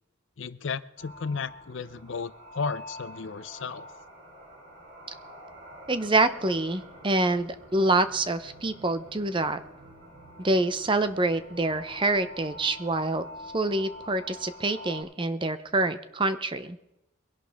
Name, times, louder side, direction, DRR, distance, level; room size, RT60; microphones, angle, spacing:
voice 1, 0.4-3.9, left 5 dB, 65° left, 15 dB, 0.6 m, -34 dB
sound 1, 1.0-15.0, equal, 60° right, 4.0 m, -47 dB
voice 2, 5.9-9.6 10.4-13.2 13.5-16.8, right 2 dB, 25° right, 11 dB, 0.7 m, -26 dB
22.5 x 11.5 x 3.5 m, 0.90 s
head